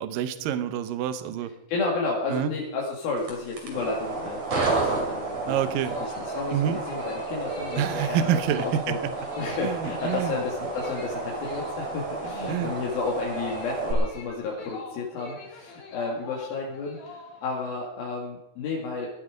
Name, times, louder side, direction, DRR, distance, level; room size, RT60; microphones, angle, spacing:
voice 1, 0.0-1.5 2.3-2.5 5.5-5.9 6.5-6.8 7.8-9.0 9.6-10.4 12.5-12.7, right 9 dB, 75° right, 11 dB, 2.6 m, -27 dB
voice 2, 1.7-5.6 5.9-9.0 9.4-19.1, left 3 dB, 85° left, -2 dB, 4.0 m, -32 dB
sound 1, 3.2-13.9, right 3 dB, 50° right, 4.0 m, -32 dB
sound 2, 5.8-17.7, left 3 dB, 55° left, 3.6 m, -44 dB
18.5 x 12.0 x 5.0 m, 0.90 s
omnidirectional pair, 4.1 m